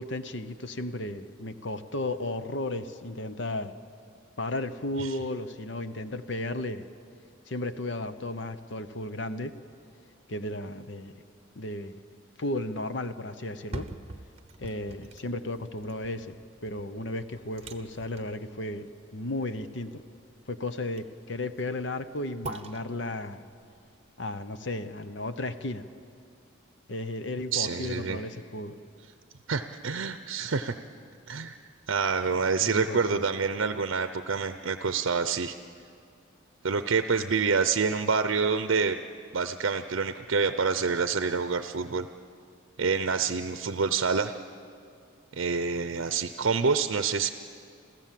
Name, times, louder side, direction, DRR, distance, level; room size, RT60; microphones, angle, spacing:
voice 1, 0.0-3.7 4.4-6.8 7.5-9.5 10.3-11.1 11.6-11.9 12.4-13.9 14.6-16.4 16.6-18.9 19.1-20.0 20.5-23.4 24.2-25.8 26.9-28.7 32.6-33.2, left 2 dB, 60° left, 11 dB, 0.9 m, -34 dB
sound 1, 13.5-25.5 25.9-26.0, right 2 dB, 30° right, 1.0 m, -46 dB
voice 2, 27.5-28.2 29.5-30.7 31.3-31.6 31.9-35.5 36.6-39.0 39.3-42.1 42.8-44.3 45.4-47.3, right 5 dB, 70° right, 10 dB, 0.6 m, -27 dB
28.5 x 15.0 x 7.5 m, 2.4 s
head